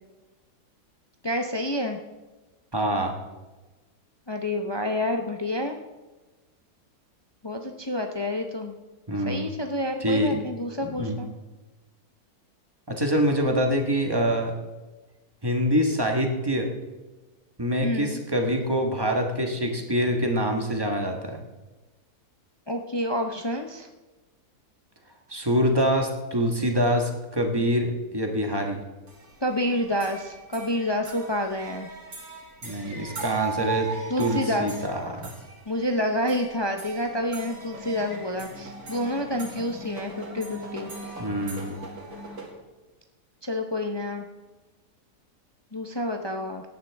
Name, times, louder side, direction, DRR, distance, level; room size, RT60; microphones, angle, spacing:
voice 1, 1.2-2.0 4.3-5.8 7.4-8.8 9.3-11.3 17.8-18.2 22.7-23.9 29.4-31.9 34.1-34.7 35.7-40.9 43.4-44.3 45.7-46.6, left 1 dB, 40° left, 4 dB, 0.3 m, -28 dB
voice 2, 2.7-3.1 9.1-9.5 10.0-10.4 10.8-11.2 12.9-14.5 15.4-16.7 17.6-21.4 25.3-28.8 32.6-35.3 41.2-41.8, equal, 15° right, 3 dB, 1.2 m, -25 dB
sound 1, 29.1-42.5, right 4 dB, 70° right, 2.8 m, -39 dB
17.0 x 10.0 x 3.5 m, 1.2 s
omnidirectional pair, 1.7 m